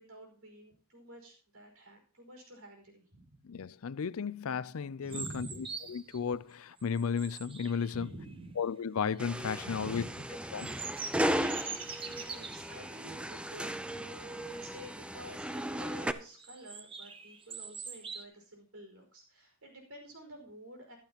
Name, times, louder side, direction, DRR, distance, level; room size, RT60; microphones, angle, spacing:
voice 1, 0.0-3.4 5.0-5.9 7.9-8.6 9.6-10.2 11.5-21.0, right 1 dB, 85° right, 5.3 m, -50 dB
voice 2, 3.4-5.5 5.9-8.1 8.6-10.0 10.5-10.8, left 6 dB, 85° left, 0.5 m, -34 dB
sound 1, 5.1-6.2 6.7-8.3 9.0-9.5 9.9-12.8 13.3-13.5 13.9-14.0 14.4-14.7 15.3-15.9 16.4-18.2, right 5 dB, 25° right, 0.9 m, -44 dB
sound 2, 9.2-16.1, equal, 5° right, 0.4 m, -36 dB
sound 3, 10.4-15.4 15.7-16.0, right 4 dB, 65° right, 2.4 m, -51 dB
14.5 x 12.0 x 3.0 m
head